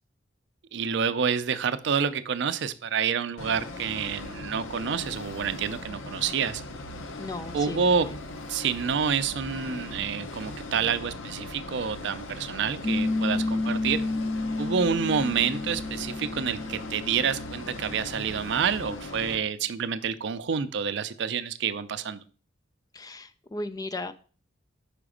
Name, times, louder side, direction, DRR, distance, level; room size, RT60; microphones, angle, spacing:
voice 1, 0.7-6.6 7.5-8.1 8.5-14.0 14.6-22.2, right 6 dB, 65° right, 13 dB, 0.4 m, -28 dB
sound 1, 3.4-19.4, left 2 dB, 85° left, 0.7 m, -39 dB
voice 2, 7.2-7.8 22.9-24.1, left 2 dB, 20° left, 12 dB, 0.3 m, -35 dB
Piano, 12.8-18.0, left 2 dB, 35° left, 1.0 m, -31 dB
5.1 x 4.8 x 5.0 m, 0.41 s
head